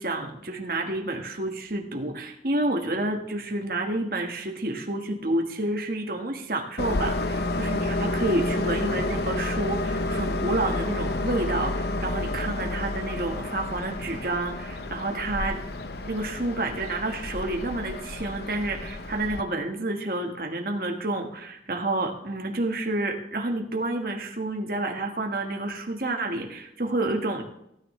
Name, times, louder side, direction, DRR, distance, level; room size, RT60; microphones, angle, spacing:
voice 1, 0.0-15.6 16.0-27.4, right 2 dB, 50° right, 3 dB, 1.4 m, -29 dB
Train, 6.8-19.4, left 2 dB, 65° left, 0.8 m, -30 dB
16.5 x 9.6 x 3.2 m, 0.80 s
head